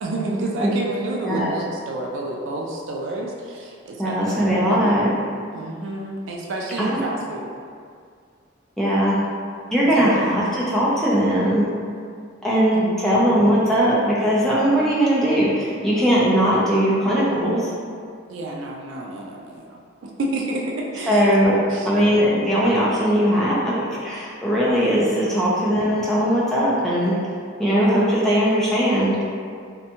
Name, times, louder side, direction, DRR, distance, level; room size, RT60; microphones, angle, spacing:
voice 1, 0.0-5.3 5.5-7.5 10.0-10.2 12.7-13.1 18.3-22.1, right 2 dB, 75° right, -1 dB, 0.3 m, -30 dB
voice 2, 4.0-5.1 6.8-7.0 8.8-9.2 9.7-11.7 12.4-17.7 21.1-21.6 21.9-27.1 27.6-29.2, equal, ahead, -8 dB, 0.4 m, -19 dB
2.6 x 2.2 x 2.7 m, 2.2 s
head